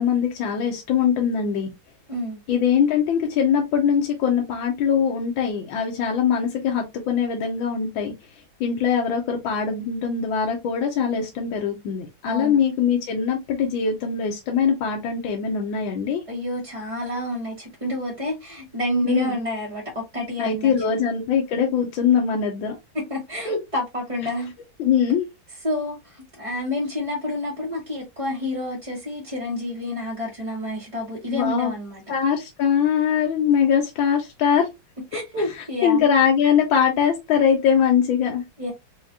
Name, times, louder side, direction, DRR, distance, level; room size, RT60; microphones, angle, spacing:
voice 1, 0.0-1.7 2.5-8.1 8.6-16.2 19.0-19.3 20.4-22.8 23.5-23.6 24.8-25.3 31.3-31.7 32.1-34.7 35.1-35.2 35.8-38.4, left 7 dB, 80° left, 1.6 m, -22 dB
voice 2, 2.1-2.4 12.3-12.6 16.3-20.7 22.9-24.5 25.6-32.0 35.1-36.0 38.6-38.7, left 1 dB, 25° right, 0.9 m, -29 dB
4.8 x 2.4 x 2.8 m
omnidirectional pair, 2.1 m